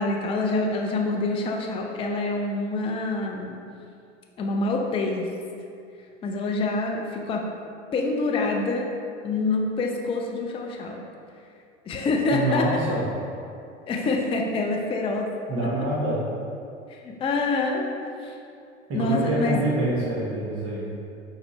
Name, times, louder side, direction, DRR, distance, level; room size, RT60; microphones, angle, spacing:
voice 1, 0.0-3.6 4.4-5.3 6.2-7.5 7.9-8.9 9.2-11.0 11.9-12.8 13.9-15.3 15.6-15.7 16.9-18.4 18.9-19.6, left 3 dB, 15° left, 1 dB, 0.4 m, -26 dB
voice 2, 12.3-13.1 15.5-16.2 18.9-20.9, right 1 dB, 40° right, -5 dB, 1.1 m, -26 dB
4.4 x 3.6 x 3.1 m, 2.4 s
hypercardioid pair, 95°, 35 cm